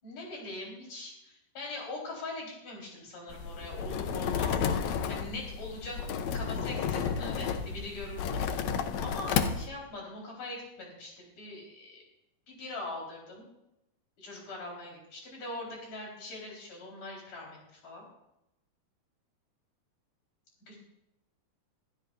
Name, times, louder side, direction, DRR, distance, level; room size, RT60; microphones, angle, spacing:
voice 1, 0.0-6.0 6.3-8.2 8.6-12.0 12.5-13.4 14.2-18.1 20.7-20.8, left 2 dB, 55° left, -2 dB, 5.9 m, -42 dB
sound 1, 3.3-9.7, left 7 dB, 85° left, 1.6 m, -32 dB
22.0 x 12.5 x 2.6 m, 0.86 s
omnidirectional pair, 4.3 m